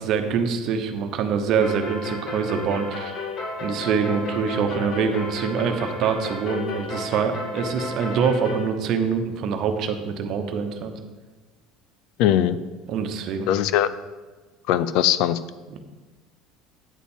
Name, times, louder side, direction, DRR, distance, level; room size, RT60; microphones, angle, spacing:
voice 1, 0.0-3.2 3.6-10.9 12.9-13.5 15.7-15.8, right 6 dB, 55° right, 7 dB, 1.0 m, -25 dB
sound 1, 1.6-8.7, left 3 dB, 50° left, 1.9 m, -33 dB
voice 2, 12.2-12.6 13.5-13.9 14.7-15.4, left 11 dB, 70° left, 15 dB, 0.4 m, -20 dB
9.2 x 4.2 x 7.2 m, 1.3 s
supercardioid pair, 115°, 0 cm